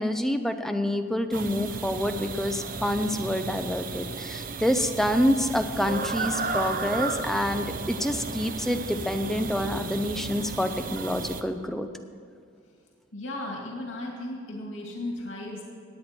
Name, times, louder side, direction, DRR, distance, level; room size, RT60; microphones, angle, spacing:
voice 1, 0.0-11.9, left 1 dB, ahead, 6 dB, 0.6 m, -27 dB
sound 1, 1.3-11.4, right 4 dB, 45° right, 0.7 m, -34 dB
voice 2, 13.1-15.6, left 1 dB, 90° left, -1 dB, 2.3 m, -35 dB
17.0 x 9.4 x 4.4 m, 2.3 s
head